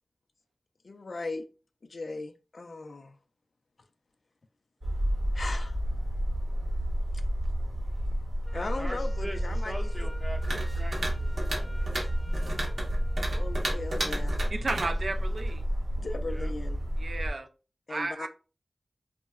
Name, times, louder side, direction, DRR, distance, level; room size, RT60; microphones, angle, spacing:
voice 1, 0.8-1.5 1.9-3.1 5.3-5.8 8.5-10.1 13.3-14.4 16.0-16.8 17.9-18.3, left 3 dB, 70° left, 0.3 m, -37 dB
sound 1, 4.8-17.3, equal, 50° right, 0.7 m, -31 dB
Wind instrument woodwind instrument, 8.4-14.5, equal, 15° left, 0.5 m, -52 dB
voice 2, 8.7-11.8 16.2-16.5, equal, 15° right, 0.7 m, -43 dB
sound 2, 10.4-15.6, right 1 dB, 90° right, 0.8 m, -34 dB
voice 3, 14.5-15.6 17.0-17.5 17.9-18.3, right 2 dB, 70° right, 0.4 m, -33 dB
3.5 x 2.0 x 2.3 m
wide cardioid pair, 55°, 0 cm